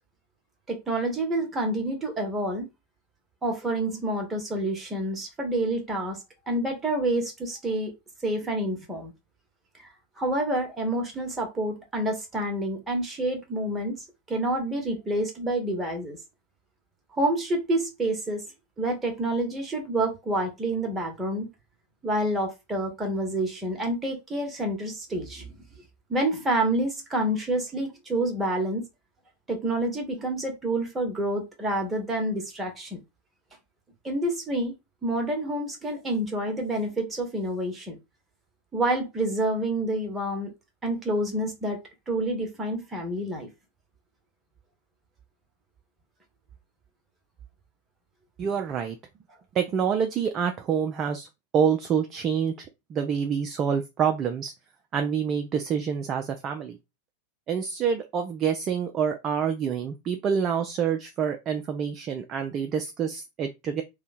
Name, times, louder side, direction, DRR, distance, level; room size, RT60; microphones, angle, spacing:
voice 1, 0.7-2.7 3.4-7.9 8.2-9.1 10.2-16.2 17.2-18.4 18.8-21.5 22.0-25.6 26.1-28.8 29.5-33.0 34.0-34.7 35.0-38.0 38.7-40.5 40.8-41.8 42.1-43.5, right 1 dB, 15° right, 1.1 m, -28 dB
voice 2, 48.4-49.0 49.5-51.3 51.5-54.5 54.9-56.8 57.5-63.8, right 7 dB, 30° right, 0.4 m, -27 dB
2.7 x 2.2 x 4.1 m
figure-of-eight pair, 90°, 0 cm